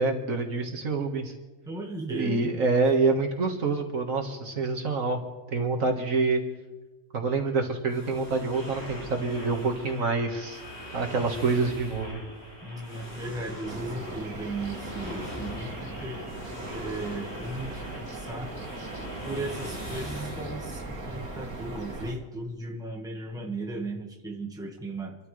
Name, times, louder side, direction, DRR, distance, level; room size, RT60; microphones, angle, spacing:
voice 1, 0.0-1.3 2.1-5.2 5.5-6.4 7.1-10.6 10.9-12.2, right 3 dB, 65° right, 2 dB, 2.0 m, -26 dB
voice 2, 1.6-2.5 12.6-16.2 16.7-18.5 19.2-25.2, right 2 dB, 5° right, 1 dB, 1.4 m, -36 dB
sound 1, 7.9-21.8, equal, 40° left, 6.3 m, -43 dB
sound 2, 8.5-20.2, left 1 dB, 85° left, 5.1 m, -46 dB
sound 3, 13.7-22.1, right 2 dB, 80° right, 2.4 m, -39 dB
27.5 x 13.5 x 3.3 m, 1.1 s
omnidirectional pair, 1.5 m